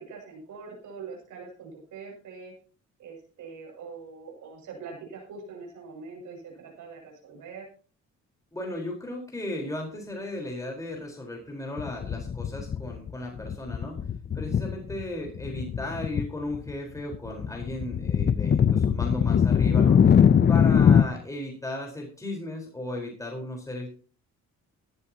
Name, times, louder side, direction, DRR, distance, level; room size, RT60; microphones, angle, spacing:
voice 1, 0.0-2.5 3.0-7.7, right 4 dB, 80° right, 0 dB, 7.1 m, -43 dB
voice 2, 8.5-14.0 14.3-20.0 20.5-23.9, left 1 dB, 10° left, 0 dB, 4.4 m, -35 dB
sound 1, 11.8-13.1 13.4-15.0 15.4-16.3 16.5-21.0, left 7 dB, 35° left, 0.6 m, -22 dB
19.0 x 12.0 x 2.9 m, 0.41 s
cardioid pair, 90°, 30 cm